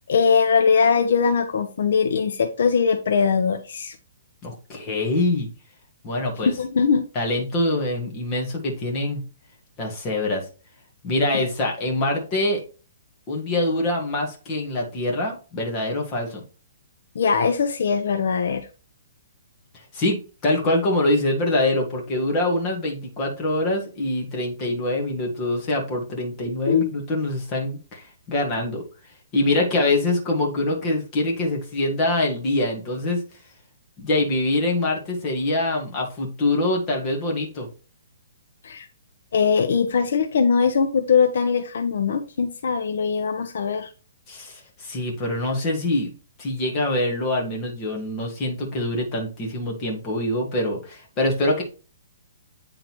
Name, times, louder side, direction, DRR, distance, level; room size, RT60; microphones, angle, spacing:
voice 1, 0.1-3.9 6.5-7.0 17.1-18.7 26.7-26.9 38.6-38.9 39.3-43.9, left 6 dB, 65° left, 7 dB, 0.7 m, -21 dB
voice 2, 4.4-5.5 6.0-6.5 7.1-9.2 9.8-10.4 11.0-12.6 13.3-16.4 19.9-28.8 29.3-33.2 34.0-37.7 44.3-46.1 46.4-51.6, left 1 dB, 20° left, 0 dB, 1.6 m, -24 dB
9.0 x 3.8 x 3.0 m, 0.35 s
hypercardioid pair, 170°, 0 cm